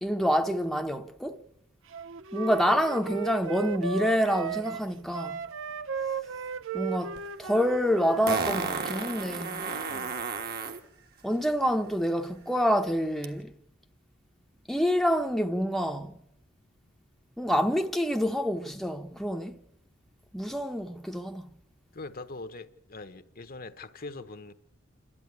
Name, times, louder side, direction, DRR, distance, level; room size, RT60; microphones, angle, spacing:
voice 1, 0.0-1.4 2.3-5.4 6.7-9.6 11.2-13.5 14.7-16.1 17.4-19.6 20.3-21.5, equal, ahead, 0.8 m, -27 dB
Wind instrument woodwind instrument, 1.9-8.3, right 5 dB, 80° right, 0.7 m, -35 dB
Fart, 7.2-7.3 8.3-10.8 13.2-13.3, right 4 dB, 50° right, 1.5 m, -32 dB
voice 2, 9.9-10.2 21.9-24.5, left 3 dB, 45° left, 1.0 m, -42 dB
28.0 x 12.0 x 9.6 m
head